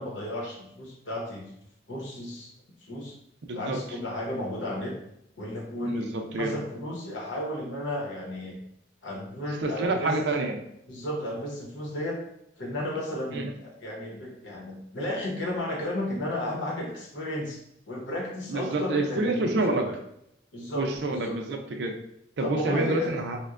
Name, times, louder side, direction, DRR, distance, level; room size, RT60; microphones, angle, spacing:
voice 1, 0.0-1.5 1.9-2.5 2.8-3.1 3.5-5.0 5.4-8.6 9.0-10.1 10.9-12.2 12.6-17.6 17.9-19.9 20.5-21.4 22.4-23.1, left 1 dB, 90° left, -1 dB, 0.9 m, -33 dB
voice 2, 3.5-3.8 5.8-6.5 9.6-10.6 13.3-13.5 18.5-19.9 20.7-22.0 22.4-23.4, right 2 dB, 70° right, 4 dB, 0.4 m, -28 dB
4.2 x 2.1 x 2.4 m, 0.78 s
head